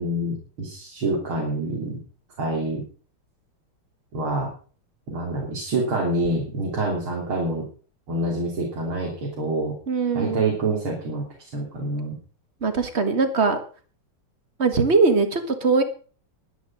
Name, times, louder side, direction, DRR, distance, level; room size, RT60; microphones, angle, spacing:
voice 1, 0.0-2.0 2.4-2.8 4.1-4.5 5.1-7.7 8.1-9.7 10.1-11.3 11.5-12.2, right 2 dB, 75° right, -2 dB, 4.1 m, -26 dB
voice 2, 9.9-10.4 12.6-13.6 14.6-15.8, right 4 dB, 30° right, 9 dB, 1.7 m, -21 dB
11.5 x 10.5 x 6.1 m, 0.40 s
omnidirectional pair, 2.4 m